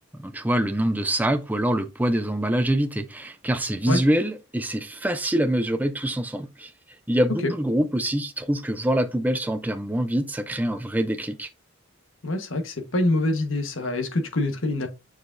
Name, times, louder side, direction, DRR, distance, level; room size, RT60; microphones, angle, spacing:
voice 1, 0.1-6.7 7.1-11.5, right 1 dB, 10° right, 0.5 m, -25 dB
voice 2, 12.2-14.9, left 2 dB, 70° left, 1.3 m, -25 dB
7.7 x 4.9 x 2.6 m
head